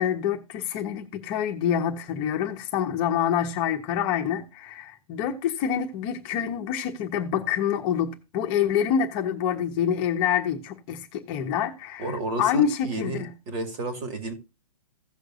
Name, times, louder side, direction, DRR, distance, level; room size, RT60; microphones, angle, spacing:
voice 1, 0.0-13.3, left 8 dB, 30° left, 1.2 m, -26 dB
voice 2, 12.0-14.3, right 2 dB, 35° right, 2.3 m, -32 dB
16.5 x 6.5 x 2.5 m
figure-of-eight pair, 125°, 19 cm